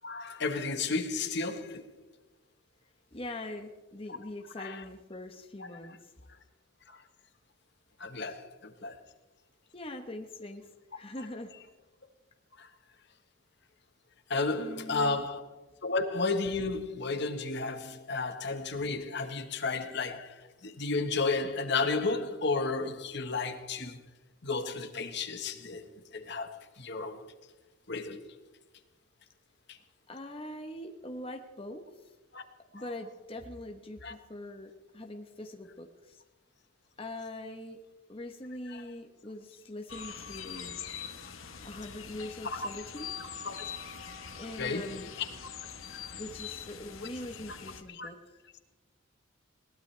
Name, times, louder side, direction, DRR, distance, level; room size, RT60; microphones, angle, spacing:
voice 1, 0.0-1.9 4.6-4.8 5.6-6.0 6.9-7.0 8.0-8.9 12.6-12.7 14.3-15.4 15.8-24.0 24.4-27.3 27.9-28.2 29.7-29.8 32.3-32.4 32.7-32.8 34.0-34.1 38.7-38.8 42.4-42.7 43.4-43.5 44.6-45.1 45.9-46.2 47.9-48.1, left 3 dB, 55° left, 1.4 m, -33 dB
voice 2, 3.1-6.1 8.2-8.4 9.7-10.7 10.9-11.5 14.6-15.2 30.1-31.8 32.7-36.2 37.0-37.8 38.1-40.8 41.6-43.1 44.3-45.1 46.1-48.4, left 1 dB, 25° left, 1.1 m, -42 dB
sound 1, 39.9-47.8, left 7 dB, 80° left, 1.3 m, -43 dB
21.5 x 19.0 x 3.4 m
head